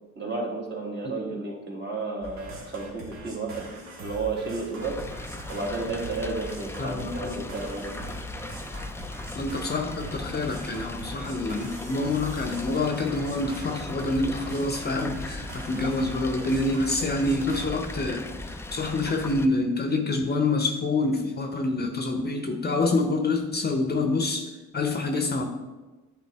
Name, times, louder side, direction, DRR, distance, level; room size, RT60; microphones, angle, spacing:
voice 1, 0.2-3.6 4.0-5.0 5.5-7.9, right 3 dB, 35° right, -1 dB, 1.7 m, -32 dB
sound 1, 2.2-17.7, right 2 dB, 65° right, 1.5 m, -42 dB
sound 2, 4.8-19.5, left 2 dB, 10° left, 0.3 m, -38 dB
voice 2, 6.8-7.4 9.3-24.5 24.7-25.4, left 2 dB, 35° left, 5 dB, 0.7 m, -27 dB
8.9 x 3.8 x 3.5 m, 1.2 s
cardioid pair, 90°, 30 cm